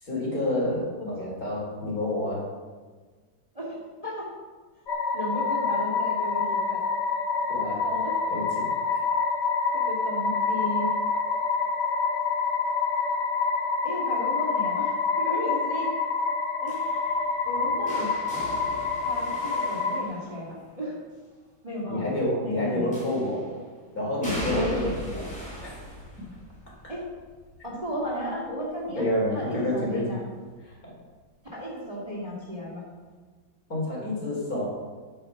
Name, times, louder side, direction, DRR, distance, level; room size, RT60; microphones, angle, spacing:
voice 1, 0.0-2.5 7.5-7.8 8.3-8.7 21.9-23.5 23.9-25.7 29.0-30.1 30.6-30.9 33.7-34.7, left 1 dB, 45° left, -4 dB, 4.3 m, -29 dB
voice 2, 1.0-1.3 3.5-4.3 5.1-6.8 7.8-8.1 9.7-10.9 13.8-15.9 16.6-16.8 17.5-18.1 19.0-21.0 21.6-22.0 22.4-22.9 24.5-24.9 26.9-27.0 27.6-29.0 29.3-30.2 31.5-32.8, equal, 20° right, -3 dB, 2.4 m, -34 dB
sound 1, 4.9-20.0, left 4 dB, 60° left, 1.8 m, -27 dB
sound 2, 16.7-20.7 22.9-23.5 24.2-30.0 30.4-30.8 32.0-32.1, equal, 5° left, 4.6 m, -40 dB
10.5 x 9.8 x 6.0 m, 1.4 s
omnidirectional pair, 2.1 m